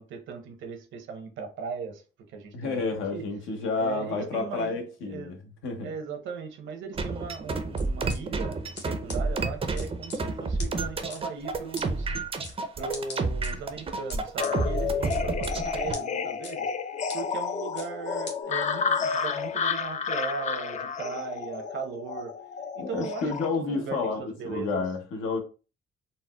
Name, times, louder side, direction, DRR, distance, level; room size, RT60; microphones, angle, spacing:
voice 1, 0.0-2.9 3.1-3.2 3.8-5.3 5.8-12.1 12.8-16.7 17.1-22.3 22.7-24.8, right 5 dB, 75° right, 0.8 m, -38 dB
voice 2, 2.5-5.4 5.6-5.9 22.8-25.4, left 4 dB, 80° left, 0.8 m, -30 dB
sound 1, 6.9-15.9, right 3 dB, 30° right, 0.4 m, -30 dB
sound 2, 7.8-8.2 8.7-8.8 9.1-9.2 9.8-10.2 10.6-10.7 11.1-11.2 11.7-11.9 12.4-12.5 12.9-13.5 14.1-14.5 15.1-15.5 15.9-16.0 16.4-16.5 17.1-17.2 17.8-17.9 18.3-18.4, left 4 dB, 60° left, 1.0 m, -40 dB
sound 3, 14.4-23.5, left 6 dB, 40° left, 0.4 m, -31 dB
4.0 x 2.1 x 2.2 m
cardioid pair, 90°, 20 cm